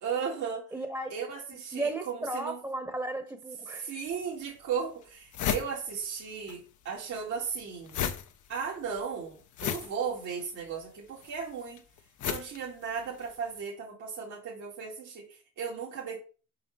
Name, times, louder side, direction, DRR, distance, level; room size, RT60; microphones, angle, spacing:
voice 1, 0.0-0.7 1.1-2.6 3.7-8.0 8.5-11.8 12.2-16.2, right 6 dB, 75° right, 2.2 m, -36 dB
voice 2, 0.7-1.1 1.7-4.0, right 2 dB, 10° right, 1.0 m, -34 dB
sound 1, 4.1-4.2 4.7-4.8 5.0-6.6 6.8-13.4, left 9 dB, 75° left, 0.9 m, -35 dB
5.6 x 5.5 x 4.1 m
cardioid pair, 90°, 30 cm